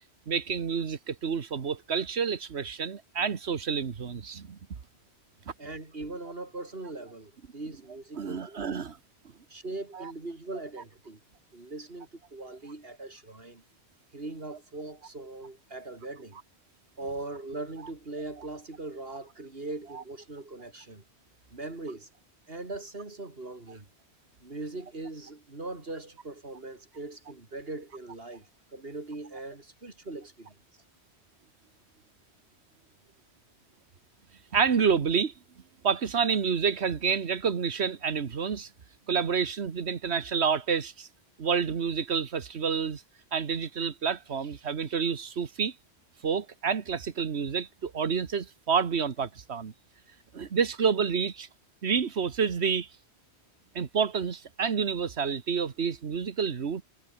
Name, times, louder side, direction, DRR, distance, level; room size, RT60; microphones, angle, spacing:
voice 1, 0.3-4.6 8.2-9.0 9.9-10.1 19.9-20.0 34.5-35.3 35.8-38.7 39.1-41.1 41.4-43.0 43.3-45.7 46.2-49.7 50.3-51.5 51.8-52.9 53.7-56.8, right 6 dB, 85° right, 1.6 m, -29 dB
voice 2, 5.6-8.6 9.5-11.2 11.5-13.6 14.1-16.4 17.0-21.0 21.5-22.1 22.5-23.9 24.4-30.6, right 2 dB, 65° right, 3.7 m, -40 dB
omnidirectional pair, 1.1 m